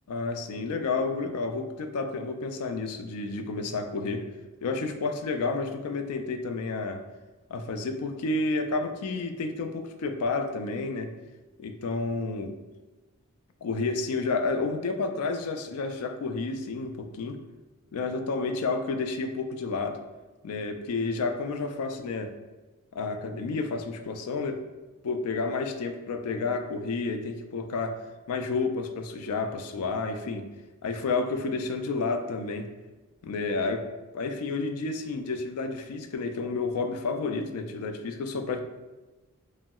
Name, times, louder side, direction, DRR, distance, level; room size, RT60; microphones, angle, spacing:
voice 1, 0.1-4.3 4.6-7.0 7.5-11.1 11.6-12.5 13.6-17.4 17.9-20.0 20.4-22.3 22.9-24.6 25.0-28.0 28.3-30.5 30.8-32.7 33.2-33.9 34.1-38.6, left 3 dB, 80° left, 6 dB, 0.3 m, -30 dB
3.0 x 2.8 x 2.2 m, 1.2 s
head